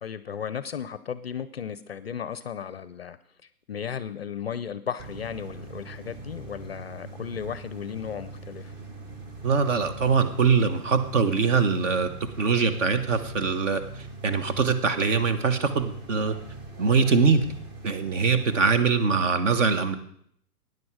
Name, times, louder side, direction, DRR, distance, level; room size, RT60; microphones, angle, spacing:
voice 1, 0.0-3.2 3.7-8.7, left 8 dB, 40° left, 15 dB, 0.5 m, -35 dB
sound 1, 5.0-18.8, right 3 dB, 25° right, 1.2 m, -42 dB
voice 2, 9.4-12.1 12.4-16.3 16.8-17.4 17.8-20.0, right 5 dB, 50° right, 9 dB, 1.4 m, -23 dB
13.5 x 9.5 x 4.8 m, 0.67 s
hypercardioid pair, 155°, 47 cm